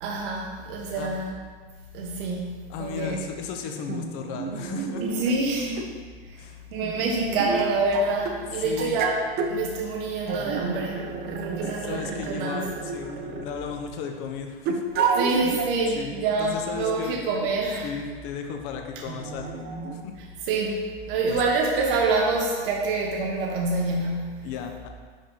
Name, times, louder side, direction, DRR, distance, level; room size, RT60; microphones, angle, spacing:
voice 1, 0.0-1.3 1.9-2.5 2.8-3.2 5.0-5.8 6.7-9.2 9.5-11.0 11.3-12.6 15.2-17.9 20.5-24.5, right 3 dB, 60° right, -1 dB, 1.0 m, -26 dB
voice 2, 2.7-5.0 5.7-5.8 6.4-6.6 6.9-7.1 8.6-9.0 11.6-14.8 15.3-15.4 15.9-17.2 17.8-19.6 19.8-20.1 21.2-21.4 24.4-24.9, left 6 dB, 45° left, 4 dB, 0.8 m, -35 dB
sound 1, 3.0-3.1 3.9-5.4 5.8-5.9 6.8-8.4 8.8-9.6 10.3-13.8 14.7-15.8 16.4-16.5 17.3-17.5 19.1-20.0, right 5 dB, 35° right, 0.6 m, -30 dB
5.3 x 5.1 x 3.8 m, 1.5 s
hypercardioid pair, 100°, 31 cm